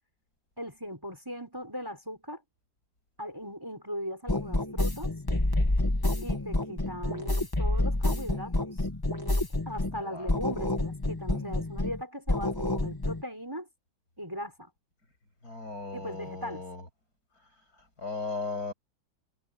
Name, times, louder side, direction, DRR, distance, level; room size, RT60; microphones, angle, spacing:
voice 1, 0.6-2.4 3.2-5.1 6.2-8.9 9.7-13.7 14.2-14.7 15.9-16.6, equal, 10° right, 5.8 m, -38 dB
sound 1, 4.3-10.0 10.3-12.0 12.3-13.2, left 2 dB, 15° left, 1.1 m, -28 dB
voice 2, 9.9-10.3 15.4-16.8 18.0-18.7, left 3 dB, 45° left, 7.3 m, -36 dB
omnidirectional pair, 2.2 m